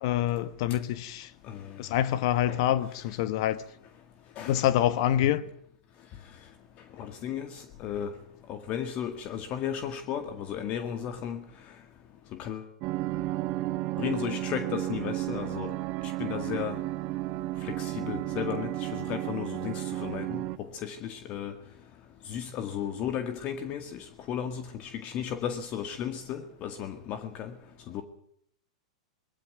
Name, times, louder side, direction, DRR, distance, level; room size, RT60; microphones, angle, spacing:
voice 1, 0.0-1.3 1.8-3.6 4.4-5.4, left 12 dB, 60° left, 1.3 m, -26 dB
voice 2, 1.5-1.8 2.5-2.6 4.4-4.6 7.0-8.1 8.5-11.4 12.4-12.7 14.0-15.7 16.0-16.8 17.6-20.4 20.8-21.5 22.3-27.5 27.9-28.0, left 9 dB, 40° left, 1.9 m, -34 dB
sound 1, 12.8-20.6, right 17 dB, 45° right, 1.0 m, -33 dB
20.5 x 14.5 x 9.3 m
hypercardioid pair, 105°, 3 cm